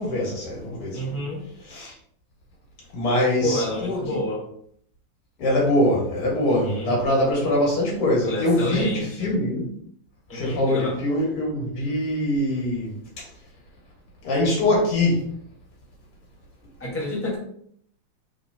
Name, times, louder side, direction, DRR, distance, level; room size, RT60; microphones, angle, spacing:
voice 1, 0.0-1.2 1.7-1.9 2.9-4.0 5.4-9.6 10.3-12.9 14.2-15.2, left 1 dB, 85° left, 2.5 m, -23 dB
voice 2, 0.9-1.4 3.4-4.4 6.5-6.9 8.2-9.3 10.3-11.0 16.8-17.4, left 1 dB, 10° left, 1.1 m, -29 dB
4.4 x 4.1 x 2.8 m
omnidirectional pair, 2.4 m